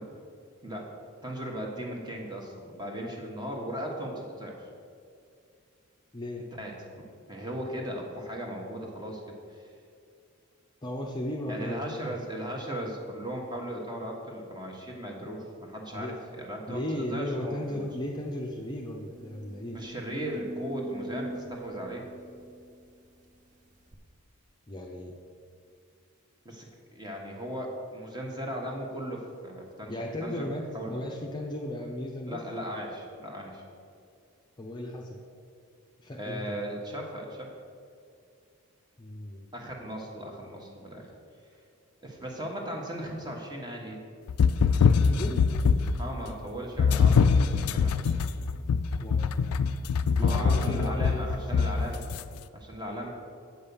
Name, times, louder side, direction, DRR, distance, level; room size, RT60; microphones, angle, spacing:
voice 1, 1.2-4.6 6.6-9.7 11.5-17.9 19.7-22.1 26.4-26.7 26.9-30.5 30.7-31.0 32.2-33.6 36.2-37.5 39.5-41.1 42.0-44.0 46.0-48.1 50.2-52.0 52.5-53.1, equal, 20° right, 0 dB, 1.2 m, -37 dB
voice 2, 10.8-12.0 15.9-16.1 16.7-19.8 24.7-25.1 29.9-32.4 34.6-35.2 36.0-36.5 39.0-39.4 45.0-45.4 49.0-49.3 50.2-51.7, left 1 dB, 20° left, -1 dB, 0.6 m, -35 dB
sound 1, 17.9-18.0 18.4-18.5 19.0-23.3 23.9-24.0, right 1 dB, 35° right, 0.7 m, -42 dB
sound 2, 44.3-46.1 46.8-52.2, left 5 dB, 80° left, 0.4 m, -23 dB
8.1 x 5.3 x 6.9 m, 2.4 s
head